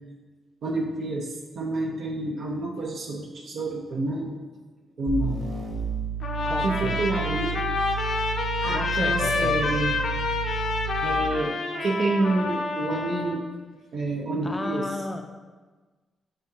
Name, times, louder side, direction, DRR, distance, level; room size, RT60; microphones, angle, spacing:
voice 1, 0.6-4.3 5.0-5.5 6.6-7.6 8.6-10.0 11.0-13.4 13.9-14.8, right 2 dB, 65° right, -1 dB, 0.9 m, -28 dB
sound 1, 5.1-11.2, right 6 dB, 40° right, 1.6 m, -31 dB
Trumpet, 6.2-13.4, left 4 dB, 60° left, 0.7 m, -28 dB
voice 2, 6.4-7.0 8.7-9.8 14.4-15.2, left 2 dB, 20° left, 5 dB, 0.5 m, -34 dB
8.6 x 3.8 x 2.9 m, 1.3 s
cardioid pair, 90°, 0 cm